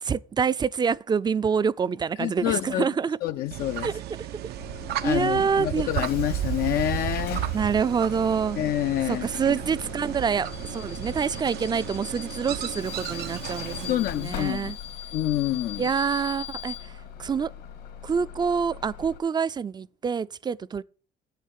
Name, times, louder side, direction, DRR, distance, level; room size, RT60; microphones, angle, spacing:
voice 1, 0.0-3.2 3.8-3.9 5.0-5.9 7.5-8.6 9.1-14.8 15.8-17.5 18.0-20.8, right 6 dB, 25° right, 0.4 m, -26 dB
voice 2, 2.2-2.9 3.2-3.9 5.0-7.5 8.6-9.3 13.9-14.7 15.1-15.8, left 13 dB, 65° left, 0.4 m, -27 dB
sound 1, 3.5-14.0, right 12 dB, 70° right, 0.6 m, -34 dB
Bus / Alarm, 4.6-19.2, left 9 dB, 90° left, 2.7 m, -40 dB
8.3 x 6.6 x 7.3 m
cardioid pair, 110°, 17 cm